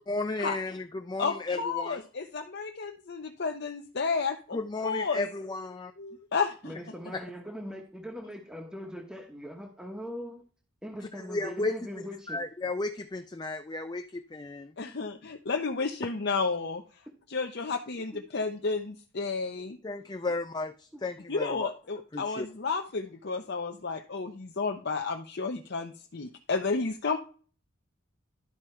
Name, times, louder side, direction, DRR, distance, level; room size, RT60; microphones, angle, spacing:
voice 1, 0.1-2.0 4.5-5.9 7.1-7.2 11.3-11.7 12.3-14.7 19.8-21.7 22.1-22.5, left 2 dB, 20° left, 0.4 m, -34 dB
voice 2, 1.2-5.3 6.0-6.7 14.8-16.8 17.3-19.8 21.3-27.2, left 4 dB, 55° left, 0.8 m, -32 dB
voice 3, 6.6-10.5 10.8-12.5 18.1-18.3, equal, 5° right, 1.0 m, -41 dB
12.0 x 4.9 x 4.4 m
head